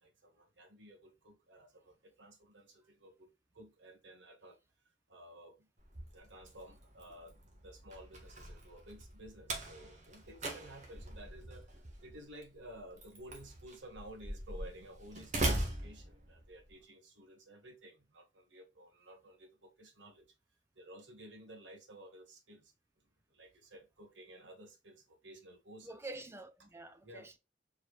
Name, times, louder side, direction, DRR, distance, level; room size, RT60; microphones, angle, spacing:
voice 1, 0.0-3.3 3.5-4.6 5.1-5.7 6.1-11.7 12.0-20.3 20.7-22.7 23.3-26.0 27.0-27.3, right 1 dB, 70° right, 1.6 m, -54 dB
Slam, 5.8-16.7, right 1 dB, 40° right, 1.6 m, -41 dB
voice 2, 25.8-27.4, right 2 dB, 15° right, 0.6 m, -47 dB
4.7 x 4.7 x 2.4 m
head